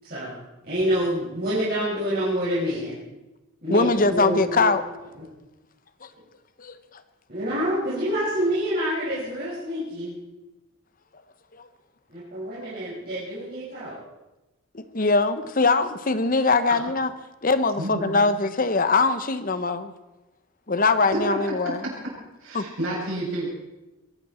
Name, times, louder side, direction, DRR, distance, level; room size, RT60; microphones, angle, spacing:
voice 1, 0.0-0.3 0.7-2.9 3.6-4.7 5.2-5.3 7.3-10.2 12.1-14.0, equal, 45° right, -10 dB, 5.9 m, -27 dB
voice 2, 3.7-4.8 6.0-6.1 6.6-6.7 14.7-17.1 17.4-19.9 20.7-21.8 22.5-22.6, left 3 dB, 40° left, 11 dB, 0.9 m, -22 dB
voice 3, 17.8-18.3 21.1-21.2 21.4-21.5 21.8-21.9 22.4-23.5, right 1 dB, 65° right, -4 dB, 7.3 m, -30 dB
22.5 x 13.5 x 4.4 m, 1.0 s
head